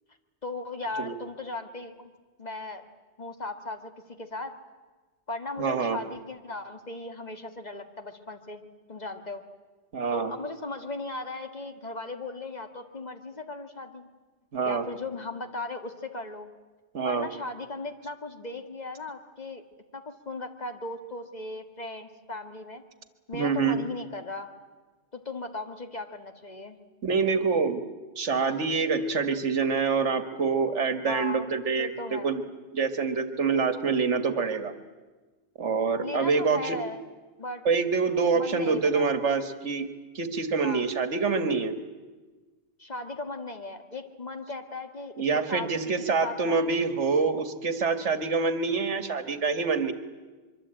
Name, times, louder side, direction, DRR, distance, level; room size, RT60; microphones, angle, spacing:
voice 1, 0.4-2.1 2.4-2.8 3.2-3.9 4.2-4.5 5.3-8.6 8.9-9.4 10.1-14.1 14.7-16.5 17.0-19.6 19.9-22.8 23.3-24.5 25.1-26.8 31.0-31.5 31.8-32.3 36.0-37.0 37.4-37.6 38.3-39.1 40.6-40.9 42.8-45.7 46.2-46.7, left 2 dB, 35° left, 6 dB, 1.8 m, -37 dB
voice 2, 5.6-6.0 9.9-10.3 14.5-14.8 16.9-17.3 23.3-23.8 27.0-27.8 28.2-32.4 32.7-34.7 35.6-36.8 37.7-39.9 40.2-41.7 45.2-49.9, right 5 dB, 80° right, 10 dB, 1.9 m, -26 dB
24.5 x 23.5 x 8.9 m, 1.3 s
omnidirectional pair, 1.2 m